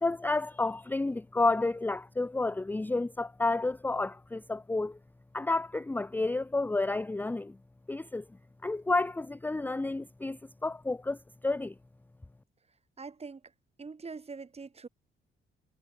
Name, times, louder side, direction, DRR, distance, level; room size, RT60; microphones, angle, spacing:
voice 1, 0.0-5.0 5.3-7.6 7.9-8.2 8.6-11.2 11.4-11.7, left 2 dB, 10° left, 0.5 m, -30 dB
voice 2, 13.0-13.4 13.8-14.9, right 4 dB, 30° right, 6.2 m, -43 dB
cardioid pair, 90°, 20 cm